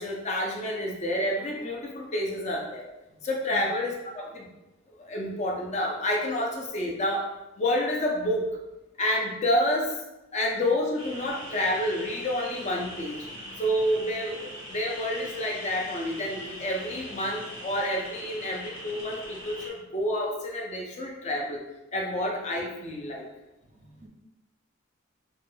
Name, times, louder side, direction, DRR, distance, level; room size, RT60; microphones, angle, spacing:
voice 1, 0.0-2.9 3.2-4.5 4.9-7.2 7.6-8.4 9.0-9.9 10.3-13.2 13.6-21.6 21.9-23.2, left 1 dB, 35° left, -1 dB, 0.5 m, -29 dB
sound 1, 11.0-19.7, equal, 70° left, 0.9 m, -41 dB
voice 2, 23.6-24.1, right 2 dB, 35° right, 2 dB, 0.3 m, -49 dB
3.1 x 2.2 x 3.0 m, 0.95 s
head